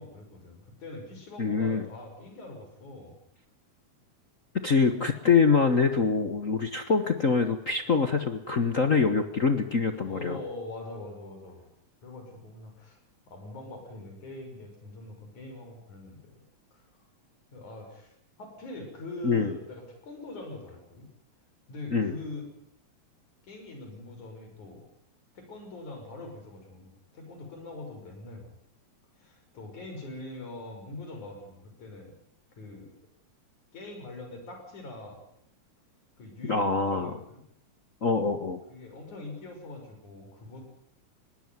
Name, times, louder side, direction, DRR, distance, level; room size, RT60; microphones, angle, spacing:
voice 1, 0.0-3.2 10.0-11.7 12.0-13.0 13.3-16.3 16.7-16.9 17.5-21.1 21.7-22.4 23.4-24.8 25.3-28.5 29.2-32.1 32.6-32.9 33.7-35.2 36.2-37.4 38.7-40.7, left 2 dB, 80° left, 3 dB, 7.5 m, -43 dB
voice 2, 1.4-1.8 4.6-10.4 19.2-19.6 21.9-22.1 36.5-37.1 38.0-38.6, left 5 dB, 50° left, 8 dB, 0.9 m, -24 dB
21.5 x 17.5 x 9.5 m, 0.76 s
omnidirectional pair, 3.4 m